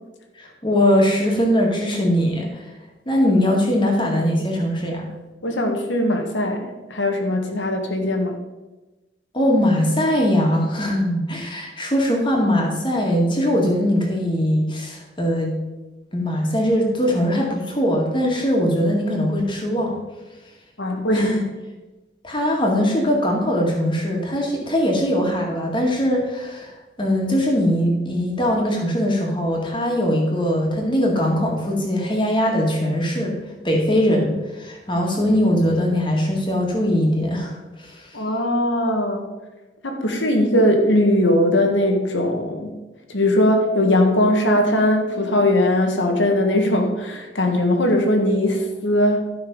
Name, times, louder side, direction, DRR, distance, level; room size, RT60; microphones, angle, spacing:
voice 1, 0.4-2.7 3.1-5.1 9.3-15.6 16.1-20.0 21.1-21.4 22.2-26.7 27.0-33.4 33.6-38.1, equal, 25° left, -1 dB, 2.0 m, -21 dB
voice 2, 5.4-8.4 20.8-21.3 38.1-39.3 39.8-42.7 43.1-49.3, left 1 dB, 90° left, 3 dB, 1.7 m, -20 dB
12.0 x 5.9 x 5.3 m, 1.1 s
head